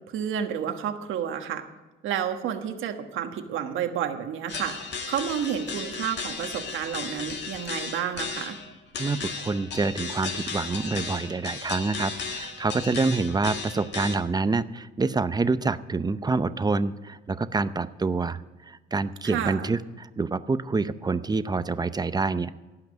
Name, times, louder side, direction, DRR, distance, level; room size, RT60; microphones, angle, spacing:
voice 1, 0.1-1.6 2.0-8.6 19.2-19.7, right 9 dB, 85° right, 6 dB, 1.4 m, -30 dB
sound 1, 4.5-14.2, left 5 dB, 60° left, 2.0 m, -35 dB
voice 2, 9.0-22.5, right 3 dB, 20° right, 13 dB, 0.6 m, -27 dB
16.5 x 5.9 x 9.2 m, 1.2 s
cardioid pair, 90°, 20 cm